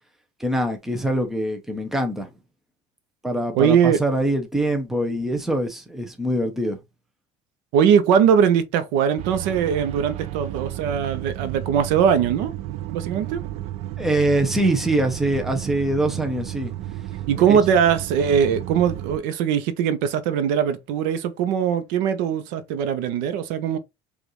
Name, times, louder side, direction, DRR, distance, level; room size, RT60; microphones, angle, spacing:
voice 1, 0.4-2.3 3.2-6.8 14.0-16.7 17.5-17.6, right 1 dB, ahead, 0.7 m, -23 dB
voice 2, 3.5-4.0 7.7-12.5 12.9-13.4 17.3-23.8, right 8 dB, 75° right, 0.8 m, -20 dB
sound 1, 9.2-19.2, right 14 dB, 55° right, 0.4 m, -33 dB
5.1 x 2.5 x 3.0 m
cardioid pair, 155°, 13 cm